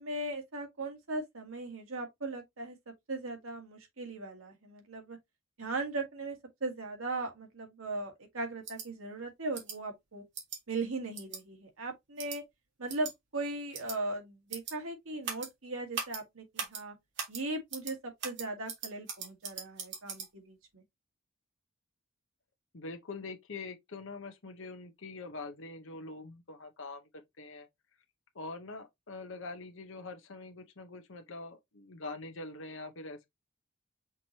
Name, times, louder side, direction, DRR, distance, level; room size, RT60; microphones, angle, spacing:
voice 1, 0.0-2.8 3.1-5.2 5.6-10.2 10.7-12.4 12.8-17.0 17.3-20.8, right 2 dB, 85° right, 1.7 m, -38 dB
sound 1, 8.6-8.9 9.5-9.8 10.3-10.6 11.1-11.4 12.2-12.4 12.9-13.1 13.7-14.0 14.5-14.7 15.2-15.5 15.9-16.2 16.6-16.8 17.2-17.4 17.7-17.9 18.2-20.3, right 6 dB, 55° right, 1.8 m, -39 dB
voice 2, 22.7-27.7 28.3-33.3, left 3 dB, 65° left, 0.9 m, -44 dB
5.8 x 3.2 x 2.9 m
head